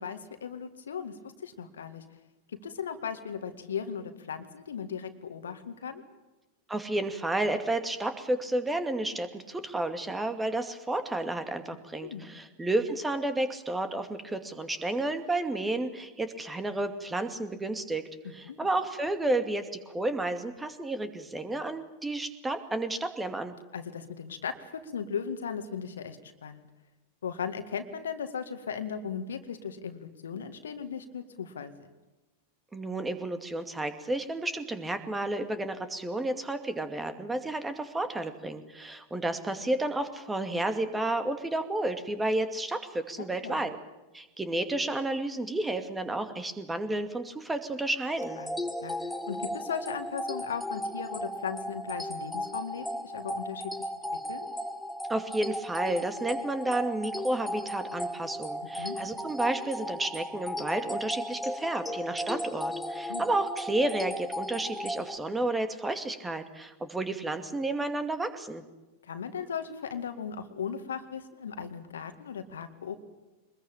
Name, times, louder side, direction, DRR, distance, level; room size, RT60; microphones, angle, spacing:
voice 1, 0.0-2.0 2.5-6.0 11.9-12.4 18.5-18.7 23.7-26.7 27.2-31.9 43.2-43.6 48.4-48.5 48.8-53.9 54.3-54.5 58.6-59.0 63.1-63.2 69.0-72.9, left 7 dB, 70° left, 9 dB, 2.0 m, -37 dB
voice 2, 6.7-18.0 18.3-23.5 32.7-43.8 44.1-48.4 55.1-68.6, right 2 dB, 10° right, 9 dB, 2.3 m, -31 dB
sound 1, 48.2-65.2, equal, 5° left, 1.7 m, -36 dB
23.5 x 21.0 x 8.8 m, 1.1 s
figure-of-eight pair, 90°, 0 cm